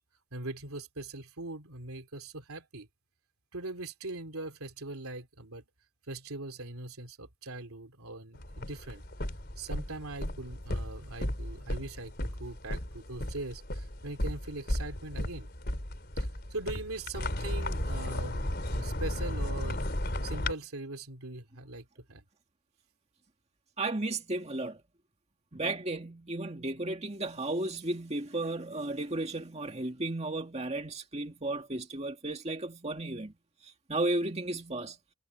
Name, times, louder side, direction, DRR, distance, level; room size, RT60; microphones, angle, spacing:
voice 1, 0.3-2.9 3.5-5.6 6.1-9.0 9.6-15.5 16.2-19.9 20.2-22.2, right 2 dB, 85° right, 3.0 m, -41 dB
sound 1, 8.4-20.5, left 1 dB, 45° left, 4.0 m, -35 dB
voice 2, 23.8-24.8 25.5-33.3 33.9-35.0, right 2 dB, 30° right, 2.1 m, -34 dB
head